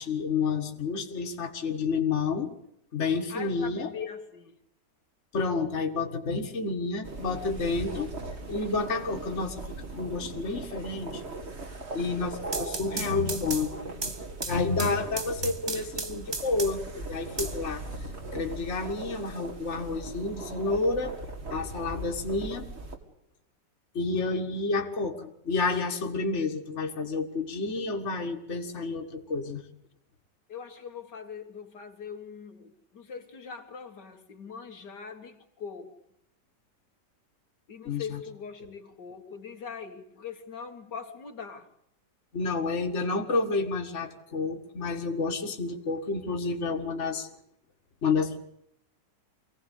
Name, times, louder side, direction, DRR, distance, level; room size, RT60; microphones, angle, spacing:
voice 1, 0.0-2.5 2.9-3.9 5.3-8.1 8.5-9.6 10.0-11.2 11.9-14.1 14.4-17.8 18.3-21.1 21.5-22.7 23.9-29.6 37.9-38.2 42.3-47.3 48.0-48.4, left 3 dB, 40° left, 4 dB, 2.1 m, -30 dB
voice 2, 3.3-4.6 30.5-36.0 37.7-41.7, left 6 dB, 70° left, 4 dB, 2.4 m, -41 dB
sound 1, 7.0-23.0, right 2 dB, 40° right, 2.6 m, -39 dB
sound 2, 12.4-16.9 17.4-18.3, right 3 dB, 20° right, 0.7 m, -36 dB
24.5 x 17.5 x 8.4 m, 0.77 s
omnidirectional pair, 1.9 m